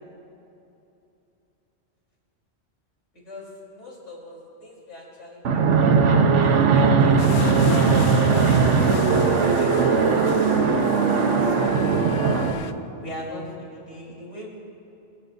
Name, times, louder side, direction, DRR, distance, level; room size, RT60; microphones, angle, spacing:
voice 1, 3.2-5.7 6.4-8.8 9.3-11.9 13.0-14.5, equal, 85° left, -4 dB, 4.2 m, -38 dB
Fixed-wing aircraft airplane, 5.4-12.5, right 5 dB, 85° right, 1.3 m, -19 dB
sound 1, 7.2-12.7, left 5 dB, 70° left, 0.9 m, -33 dB
29.0 x 15.5 x 2.7 m, 2.9 s
omnidirectional pair, 1.2 m